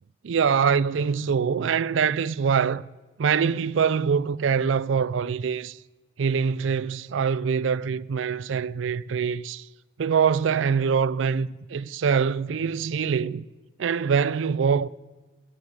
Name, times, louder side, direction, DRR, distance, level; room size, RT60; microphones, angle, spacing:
voice 1, 0.2-2.8 3.2-5.8 6.2-9.7 10.0-13.4 13.8-14.9, right 6 dB, 75° right, 0.4 m, -24 dB
19.0 x 9.9 x 5.2 m
head